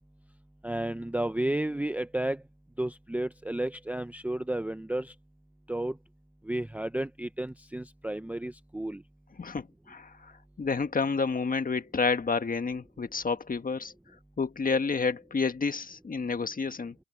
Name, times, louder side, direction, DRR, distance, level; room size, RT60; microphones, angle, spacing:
voice 1, 0.6-2.4 2.8-5.1 5.7-6.0 6.4-9.0, right 1 dB, 5° right, 0.7 m, -32 dB
voice 2, 9.4-13.9 14.4-16.9, left 4 dB, 30° left, 1.5 m, -30 dB
cardioid pair, 90°, 30 cm